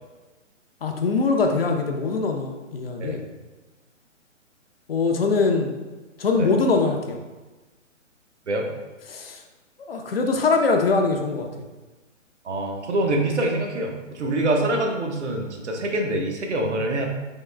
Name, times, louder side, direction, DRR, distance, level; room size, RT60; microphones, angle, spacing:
voice 1, 0.8-3.2 4.9-5.7 6.2-7.2 9.1-9.4 9.9-11.5, left 4 dB, 50° left, 3 dB, 0.5 m, -22 dB
voice 2, 12.4-17.1, right 1 dB, 60° right, 2 dB, 0.8 m, -25 dB
3.7 x 2.9 x 3.2 m, 1.2 s
figure-of-eight pair, 140°, 39 cm